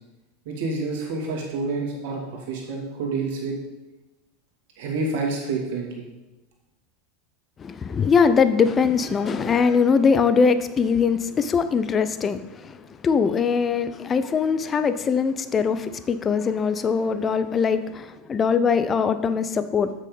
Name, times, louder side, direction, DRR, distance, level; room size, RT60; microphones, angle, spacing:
voice 1, 0.4-3.6 4.8-6.0, right 3 dB, 60° right, -1 dB, 2.4 m, -28 dB
voice 2, 7.6-19.9, left 5 dB, 25° left, 12 dB, 0.6 m, -22 dB
7.6 x 6.2 x 5.4 m, 1.0 s
figure-of-eight pair, 85°, 0 cm